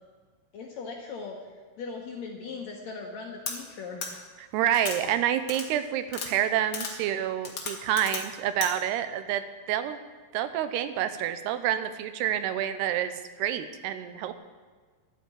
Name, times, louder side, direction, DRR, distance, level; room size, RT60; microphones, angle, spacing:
voice 1, 0.5-1.4 1.8-4.2, left 4 dB, 75° left, 0 dB, 1.6 m, -39 dB
sound 1, 3.5-3.6 4.0-4.1 4.7-5.0 5.5-5.7 6.1-6.3 6.7-6.9 7.4-8.2 8.6-8.7, left 5 dB, 50° left, 1.8 m, -34 dB
voice 2, 4.4-10.0 10.3-14.3, right 10 dB, 80° right, 11 dB, 2.7 m, -28 dB
11.0 x 9.3 x 8.3 m, 1.5 s
omnidirectional pair, 4.8 m